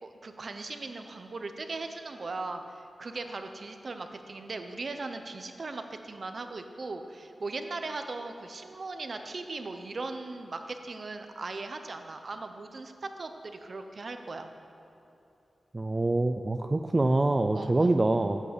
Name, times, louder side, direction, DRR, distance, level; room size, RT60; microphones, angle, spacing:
voice 1, 0.0-14.5 17.5-18.0, right 3 dB, 40° right, 7 dB, 0.9 m, -38 dB
voice 2, 15.7-18.4, right 2 dB, 20° right, 6 dB, 0.4 m, -25 dB
15.5 x 8.2 x 8.3 m, 2.8 s
wide cardioid pair, 180°, 0 cm